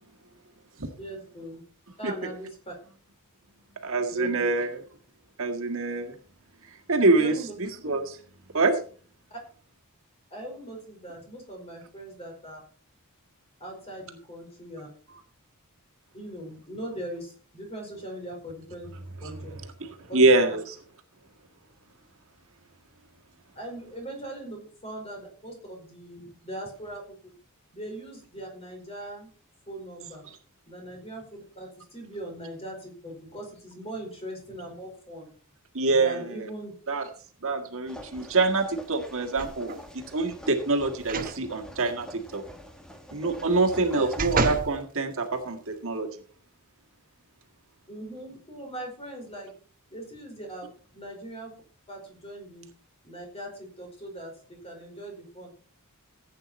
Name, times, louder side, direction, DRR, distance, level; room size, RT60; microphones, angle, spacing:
voice 1, 1.0-1.6 2.0-2.7 4.1-4.5 7.2-7.5 9.3-9.4 10.3-12.6 13.6-14.9 16.1-18.9 19.2-19.6 20.1-20.3 23.5-27.3 27.7-29.3 29.7-30.2 30.7-31.2 31.5-35.3 35.9-36.7 43.9-44.2 47.9-49.5 49.9-51.5 51.9-52.7 53.0-55.5, right 1 dB, 25° left, 1 dB, 5.0 m, -40 dB
voice 2, 3.8-4.8 5.4-6.2 6.9-7.3 7.6-8.2 8.5-8.8 20.0-20.8 35.7-36.4 36.9-37.0 37.4-42.4 43.1-46.1, right 3 dB, 65° right, 4 dB, 1.9 m, -25 dB
sound 1, 37.9-44.5, equal, 5° left, 1.3 m, -45 dB
sound 2, 39.4-39.9 41.0-41.4 41.8-41.9 43.5-44.7 45.3-45.4, right 3 dB, 40° right, 1.1 m, -30 dB
15.5 x 8.6 x 4.3 m, 0.43 s
head